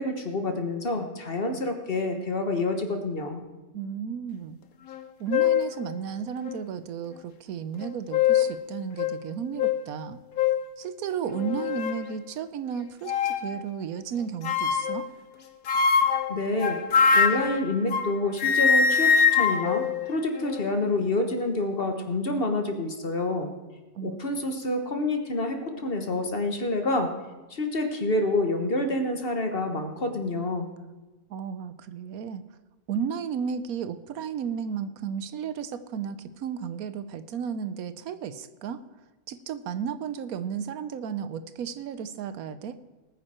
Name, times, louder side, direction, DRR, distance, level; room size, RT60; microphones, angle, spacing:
voice 1, 0.0-3.4 16.3-16.8 17.1-23.5 24.0-27.1 27.5-30.7, left 2 dB, 40° left, 5 dB, 1.5 m, -28 dB
voice 2, 3.7-4.6 5.2-10.2 10.8-15.1 23.9-24.2 31.3-32.4 32.9-38.8 39.3-42.8, right 7 dB, 80° right, 13 dB, 1.1 m, -33 dB
sound 1, 4.9-5.0 5.3-5.7 6.4-6.5 7.8-8.6 9.0-9.1 9.6-9.8 10.4-10.6 11.3-12.0 13.0-13.5 14.4-15.0 15.7-18.1 18.4-20.7, left 6 dB, 75° left, 1.3 m, -23 dB
19.0 x 9.5 x 4.4 m, 1.1 s
omnidirectional pair, 1.5 m